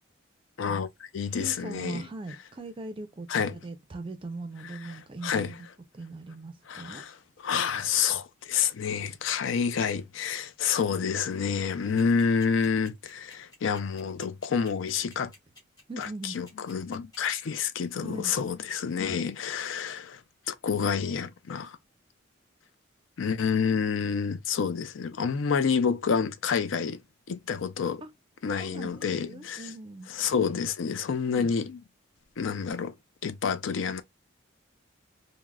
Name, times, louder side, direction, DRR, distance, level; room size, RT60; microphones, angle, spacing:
voice 1, 0.6-2.1 3.3-3.6 4.8-5.6 6.7-7.2 7.4-15.3 16.0-20.2 20.5-21.8 23.2-27.0 27.3-28.0 28.4-29.7 30.1-31.8 32.4-32.9 33.2-34.0, left 6 dB, 70° left, 0.4 m, -28 dB
voice 2, 1.4-5.6 5.9-7.0 15.9-16.4 18.0-18.3 28.0-28.1 28.6-30.1 31.3-31.5, right 2 dB, 25° right, 0.4 m, -40 dB
sound 1, 12.0-17.2, left 2 dB, 20° left, 1.1 m, -52 dB
3.4 x 2.0 x 2.3 m
head